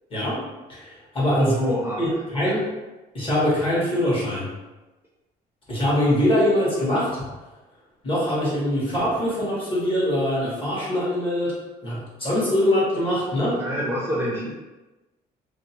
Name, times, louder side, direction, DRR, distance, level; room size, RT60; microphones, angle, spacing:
voice 1, 0.7-1.5 2.0-2.6 3.1-4.5 5.7-7.1 8.0-11.6 11.8-13.6, left 1 dB, 30° left, -7 dB, 1.2 m, -23 dB
voice 2, 1.4-2.0 2.4-2.6 13.6-14.5, equal, 15° right, -5 dB, 0.5 m, -26 dB
2.6 x 2.0 x 2.8 m, 1.1 s
cardioid pair, 110°, 17 cm